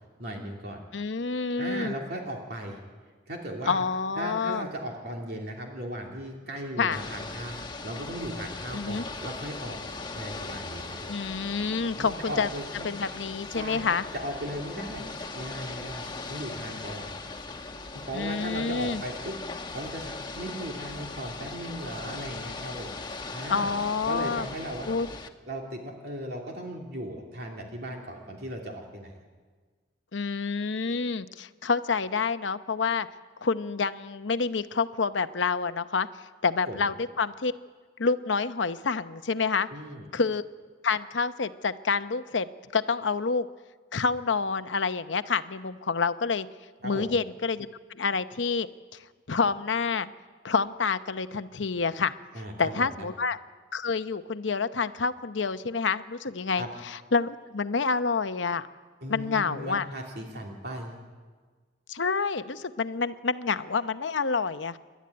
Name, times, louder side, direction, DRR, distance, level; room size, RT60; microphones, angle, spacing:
voice 1, 0.2-0.8 1.6-2.8 3.3-3.8 4.2-9.8 10.1-11.1 12.0-12.9 13.5-13.8 14.1-15.1 15.3-17.2 17.9-22.9 23.3-23.7 24.1-24.9 25.5-29.1 36.7-36.8 39.7-40.1 46.8-47.1 52.3-53.1 56.6-56.7 59.0-61.0, right 1 dB, 60° right, 0 dB, 2.8 m, -37 dB
voice 2, 0.9-1.9 3.7-4.7 6.8-7.0 8.7-9.0 11.1-12.5 12.8-14.0 18.1-19.0 23.5-24.5 24.9-25.1 30.1-33.1 33.4-36.1 36.4-37.5 38.0-39.7 40.1-40.4 40.8-42.5 42.7-43.5 43.9-46.5 46.8-47.7 47.9-48.7 49.3-50.1 50.4-52.1 52.6-53.4 53.7-58.7 59.1-59.9 61.9-64.8, left 5 dB, 90° left, 11 dB, 0.8 m, -28 dB
Ocean / Boat Water vehicle, 6.9-25.3, left 3 dB, 25° left, 1.1 m, -39 dB
28.5 x 12.5 x 9.6 m, 1.5 s
head